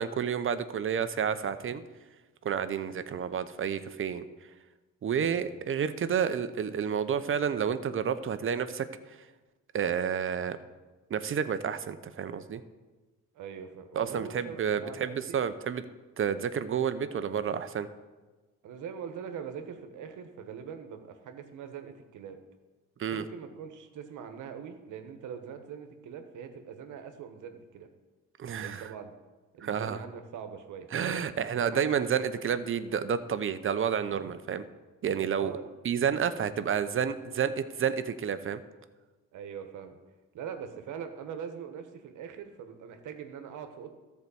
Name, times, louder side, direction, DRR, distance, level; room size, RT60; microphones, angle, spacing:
voice 1, 0.0-1.8 2.4-4.2 5.0-8.9 9.7-10.6 11.1-12.6 14.0-15.8 16.2-17.9 23.0-23.2 28.4-28.9 29.6-30.0 30.9-34.6 35.0-35.5 35.8-38.6, right 7 dB, 45° right, 12 dB, 0.7 m, -30 dB
voice 2, 13.3-15.4 18.6-22.4 23.1-27.9 28.6-29.1 29.5-30.9 31.7-32.0 35.3-35.6 36.0-36.4 39.3-40.0 40.3-44.0, right 7 dB, 80° right, 7 dB, 1.2 m, -42 dB
13.5 x 4.6 x 7.0 m, 1.2 s
cardioid pair, 90°, 30 cm